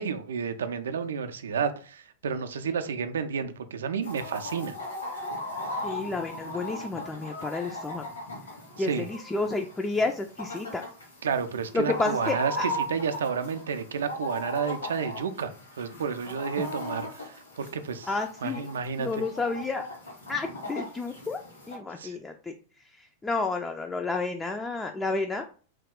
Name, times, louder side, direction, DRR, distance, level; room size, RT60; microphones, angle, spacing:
voice 1, 0.0-4.7 8.8-9.0 11.2-15.5 15.8-18.1 18.4-19.2 22.0-22.2, right 6 dB, 65° right, 10 dB, 0.4 m, -31 dB
Chicken rooster, 4.0-21.8, left 1 dB, 80° left, 1.4 m, -38 dB
voice 2, 5.8-8.0 8.8-10.8 11.7-12.7 18.1-18.6 19.0-19.8 20.3-21.4 21.7-22.5 23.2-25.4, left 3 dB, 15° left, 4 dB, 0.3 m, -30 dB
3.0 x 2.3 x 3.5 m, 0.40 s
figure-of-eight pair, 90°, 0 cm